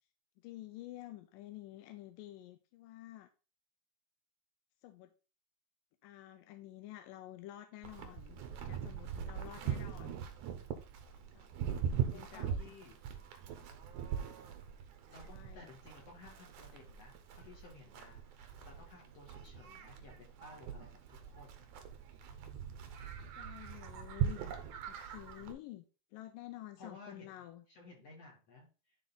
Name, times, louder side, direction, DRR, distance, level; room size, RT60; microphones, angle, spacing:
voice 1, 0.4-3.3 4.8-5.1 6.0-10.2 11.3-11.7 11.9-12.7 15.2-15.7 23.4-25.9 26.1-27.7, left 14 dB, 80° left, 8 dB, 2.0 m, -50 dB
Livestock farm animals working animals, 7.8-25.5, right 8 dB, 70° right, 1.9 m, -41 dB
voice 2, 12.1-13.0 15.1-21.7 22.3-22.8 26.8-27.3 27.7-28.9, left 3 dB, 50° left, -1 dB, 2.4 m, -56 dB
11.5 x 3.9 x 4.0 m, 0.33 s
omnidirectional pair, 4.5 m